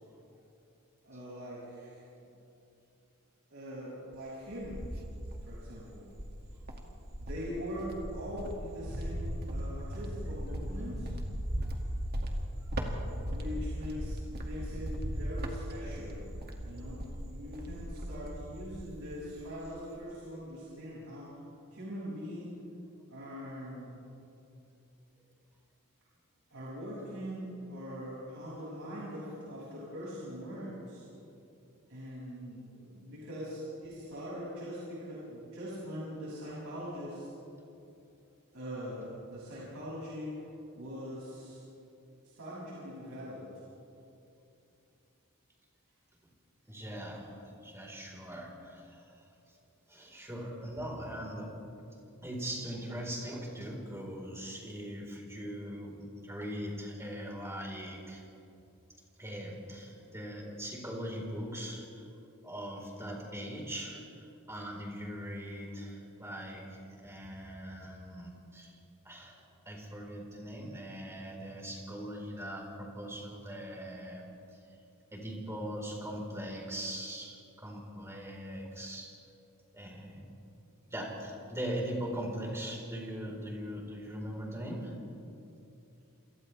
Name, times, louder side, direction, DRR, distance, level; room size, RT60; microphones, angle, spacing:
voice 1, 1.0-2.0 3.5-4.9 5.4-6.1 7.2-11.1 13.3-16.2 16.6-21.4 21.7-22.5 23.1-24.0 26.5-31.0 31.9-37.3 38.5-40.4 40.7-41.6 42.2-43.5, equal, 70° right, -8 dB, 6.7 m, -42 dB
Cricket, 4.1-5.7 6.1-19.1 19.4-19.9, equal, 45° right, 2.3 m, -38 dB
voice 2, 46.7-47.3 47.6-49.2 49.9-51.6 52.2-58.2 59.2-62.0 62.4-68.8 69.0-69.4 69.6-74.3 75.1-79.1 79.7-80.3 80.9-85.0, equal, 10° right, -2 dB, 4.4 m, -40 dB
28.0 x 28.0 x 3.5 m, 2.7 s
head